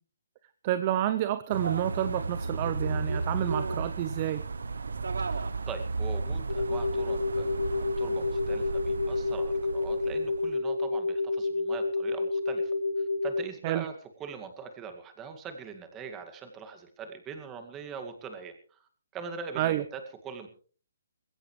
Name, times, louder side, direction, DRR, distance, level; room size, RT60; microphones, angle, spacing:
voice 1, 0.6-4.5 13.6-13.9 19.6-19.8, right 12 dB, 30° right, 13 dB, 0.8 m, -29 dB
sound 1, 1.5-10.5, right 3 dB, 90° right, 1.0 m, -34 dB
voice 2, 5.2-12.7 13.2-13.9 14.2-18.9 19.1-20.5, right 5 dB, 15° right, 6 dB, 2.1 m, -42 dB
sound 2, 6.5-13.4, left 3 dB, 85° left, 1.1 m, -29 dB
21.0 x 16.5 x 3.3 m, 0.40 s
hypercardioid pair, 160°, 0 cm